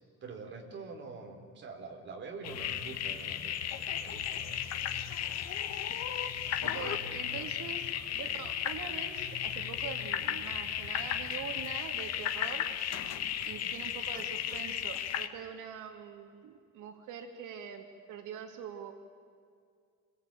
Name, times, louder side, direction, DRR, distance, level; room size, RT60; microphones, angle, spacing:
voice 1, 0.2-5.1 6.4-7.0 7.3-7.5 13.4-13.7, right 4 dB, 35° right, 2 dB, 4.0 m, -47 dB
sound 1, 2.4-15.3, left 9 dB, 60° left, 1.6 m, -35 dB
voice 2, 6.6-12.6 13.4-18.9, right 7 dB, 80° right, 4 dB, 2.3 m, -44 dB
28.5 x 22.0 x 9.0 m, 2.2 s
cardioid pair, 180°, 30 cm